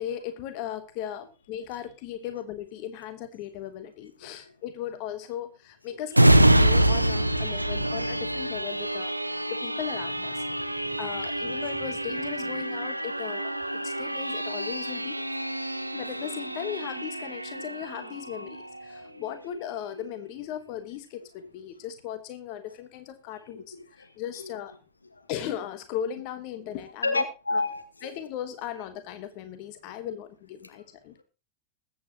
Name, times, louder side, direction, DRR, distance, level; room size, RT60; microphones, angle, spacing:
voice 1, 0.0-13.5 13.8-15.2 15.9-24.7 25.3-27.6 28.0-31.2, left 10 dB, 45° left, 10 dB, 1.2 m, -37 dB
sound 1, 6.1-19.4 19.9-20.0, right 1 dB, 85° right, 0.7 m, -26 dB
voice 2, 10.5-11.2 15.8-15.9 16.2-16.3 19.0-19.2 24.0-24.1 24.4-24.5 25.2-25.3 27.0-28.1, left 3 dB, 80° left, 7 dB, 1.6 m, -31 dB
21.0 x 8.4 x 3.0 m, 0.30 s
figure-of-eight pair, 90°, 0 cm